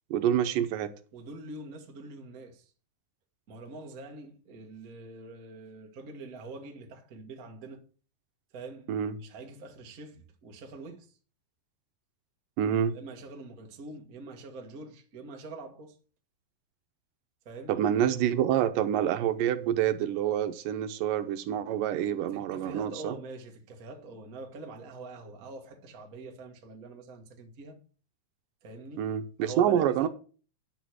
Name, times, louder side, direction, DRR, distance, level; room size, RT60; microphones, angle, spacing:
voice 1, 0.1-0.9 8.9-9.1 12.6-13.0 17.7-23.2 29.0-30.1, right 10 dB, 75° right, 2.3 m, -27 dB
voice 2, 1.1-2.7 3.5-7.8 8.5-11.1 12.9-16.0 17.4-17.8 22.3-27.8 28.6-29.1 29.4-30.1, right 3 dB, 50° right, 1.0 m, -44 dB
10.0 x 6.3 x 6.2 m
omnidirectional pair, 4.1 m